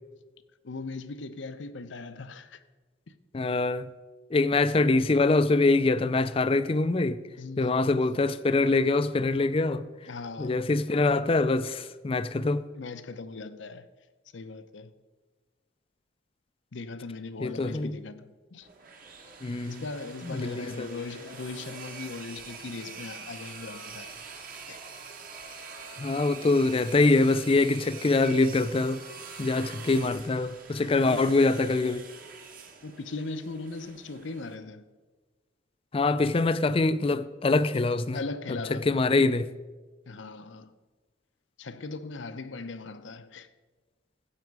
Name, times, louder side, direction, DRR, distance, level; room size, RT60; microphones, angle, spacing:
voice 1, 0.6-2.6 3.1-3.2 4.5-4.6 7.4-8.1 10.0-10.7 12.7-13.9 14.3-14.9 16.7-18.7 19.7-24.2 24.7-24.8 31.1-31.3 32.8-34.8 38.1-39.0 40.1-40.7 41.6-43.5, left 3 dB, 75° left, 0.7 m, -39 dB
voice 2, 3.3-3.9 4.3-7.2 7.6-9.9 10.4-12.7 17.4-18.0 19.4-19.8 20.3-20.9 26.0-29.0 29.4-32.1 35.9-38.2 38.9-39.5, left 3 dB, 30° left, 0.4 m, -24 dB
sound 1, 18.6-34.5, right 5 dB, 45° right, 1.3 m, -45 dB
14.5 x 8.3 x 4.7 m
head